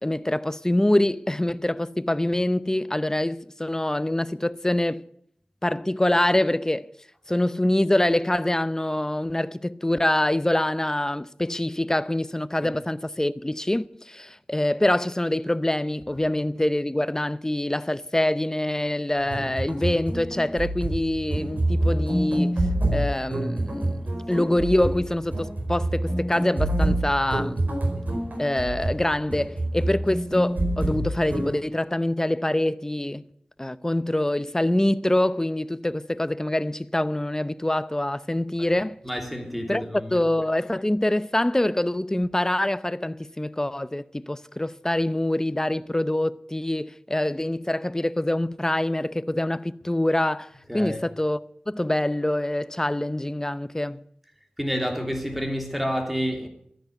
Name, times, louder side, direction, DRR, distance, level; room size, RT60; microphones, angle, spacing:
voice 1, 0.0-5.1 5.6-6.9 7.3-22.7 22.9-24.0 24.3-27.7 28.4-33.2 33.6-39.0 39.7-39.8 40.1-51.4 51.7-54.0, left 1 dB, 20° left, 0.7 m, -25 dB
sound 1, 19.2-31.5, right 1 dB, 85° right, 4.4 m, -27 dB
voice 2, 39.0-40.1 50.7-51.0 54.6-56.5, equal, ahead, 3.1 m, -29 dB
13.5 x 10.5 x 9.3 m
wide cardioid pair, 55°, 3 cm